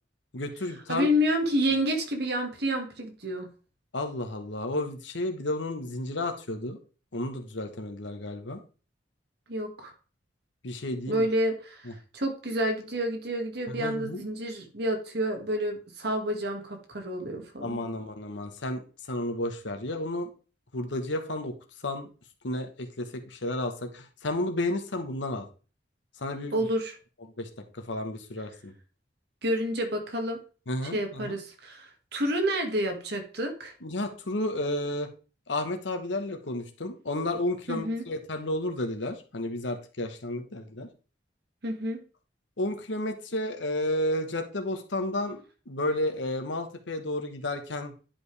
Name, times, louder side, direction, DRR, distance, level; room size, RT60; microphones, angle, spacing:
voice 1, 0.3-1.1 3.9-6.8 7.1-8.6 10.6-11.2 11.8-11.9 13.7-14.2 17.6-20.3 20.7-21.5 21.8-22.1 22.4-25.5 26.2-26.7 27.4-28.7 30.7-31.4 33.8-35.1 35.5-40.9 42.6-45.4 45.7-47.9, left 1 dB, 80° left, 5 dB, 1.2 m, -32 dB
voice 2, 0.9-3.5 9.5-9.9 11.1-17.8 26.5-27.0 29.4-30.4 30.9-33.7 37.7-38.0 41.6-42.0, equal, 60° right, 3 dB, 1.7 m, -29 dB
10.5 x 5.1 x 3.3 m, 0.36 s
head